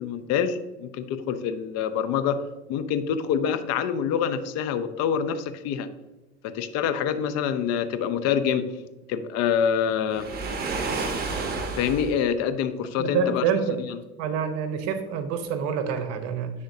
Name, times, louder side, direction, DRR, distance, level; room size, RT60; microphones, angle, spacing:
voice 1, 0.0-2.4 2.7-5.9 6.4-8.7 9.1-10.3 11.8-13.4 13.8-14.0, left 8 dB, 60° left, 11 dB, 0.6 m, -26 dB
Waves surf, 10.1-12.2, right 3 dB, 30° right, 1.1 m, -30 dB
voice 2, 13.0-13.8 14.2-16.5, right 6 dB, 60° right, 8 dB, 0.8 m, -27 dB
10.0 x 3.6 x 2.7 m, 1.1 s
supercardioid pair, 105°, 29 cm